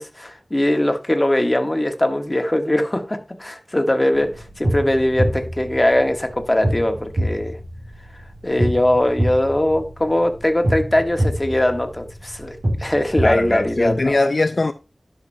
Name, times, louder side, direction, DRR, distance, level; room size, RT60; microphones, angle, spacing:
voice 1, 0.0-7.6 8.4-14.2, left 1 dB, 25° left, 1.3 m, -21 dB
sound 1, 4.1-14.1, equal, 80° right, 2.6 m, -26 dB
voice 2, 13.2-14.7, left 2 dB, 60° left, 0.4 m, -20 dB
12.0 x 5.9 x 2.7 m
wide cardioid pair, 60°, 0 cm